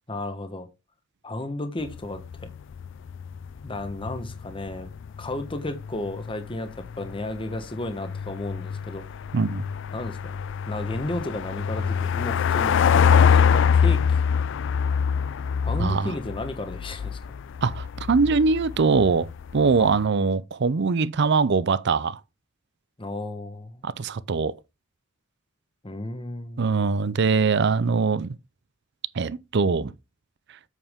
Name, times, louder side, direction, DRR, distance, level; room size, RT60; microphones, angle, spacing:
voice 1, 0.1-0.7 1.2-2.5 3.6-4.9 5.2-9.0 9.9-10.3 10.7-12.8 13.3-14.0 15.6-17.2 19.8-20.0 23.0-23.8 25.8-26.7, left 1 dB, 25° left, 1.2 m, -33 dB
sound 1, 1.8-20.1, left 7 dB, 65° left, 0.4 m, -25 dB
voice 2, 9.3-9.7 15.8-16.1 17.6-22.2 23.8-24.6 26.6-28.4 29.1-29.9, right 4 dB, 60° right, 0.6 m, -22 dB
8.2 x 7.1 x 3.6 m
head